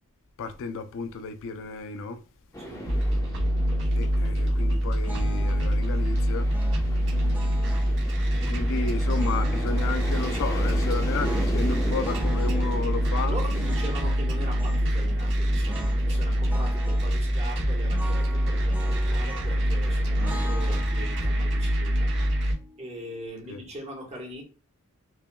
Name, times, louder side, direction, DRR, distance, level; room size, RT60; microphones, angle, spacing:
voice 1, 0.4-2.2 4.0-6.5 8.4-13.4 23.5-23.6, left 4 dB, 60° left, 0.4 m, -33 dB
sound 1, 2.5-20.8, equal, 15° left, 0.8 m, -39 dB
voice 2, 2.6-2.9 13.1-22.1 22.8-24.4, equal, 30° right, 1.0 m, -40 dB
sound 2, 2.9-22.5, equal, 55° right, 1.0 m, -25 dB
sound 3, 5.1-5.7 6.5-8.0 9.0-10.4 11.2-12.7 13.5-14.9 15.7-16.0 16.3-17.1 17.9-19.7 20.2-23.3, right 2 dB, 10° right, 0.4 m, -41 dB
5.6 x 2.2 x 2.2 m
head